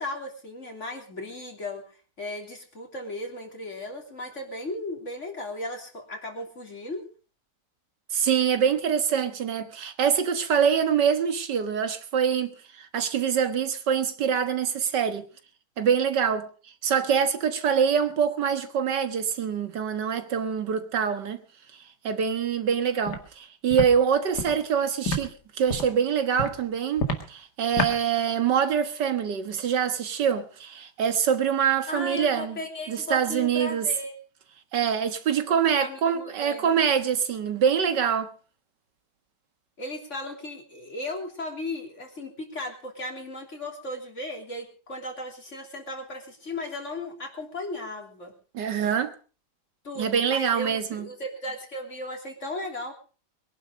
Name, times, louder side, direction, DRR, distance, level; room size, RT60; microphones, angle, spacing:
voice 1, 0.0-1.8 2.2-7.1 31.9-34.2 35.8-36.8 39.8-48.3 49.8-52.9, left 1 dB, 45° left, 3.5 m, -36 dB
voice 2, 8.1-15.3 15.8-16.5 16.8-21.4 22.0-32.6 32.9-33.9 34.7-38.3 48.5-49.1 50.0-51.1, right 7 dB, 90° right, 2.1 m, -25 dB
Walk footsteps, 23.1-23.2 23.7-23.9 24.4-24.5 25.1-25.2 25.7-25.9 26.4-26.5 27.0-27.2 27.8-27.9, left 1 dB, 75° left, 2.7 m, -27 dB
22.0 x 11.0 x 5.2 m
omnidirectional pair, 1.8 m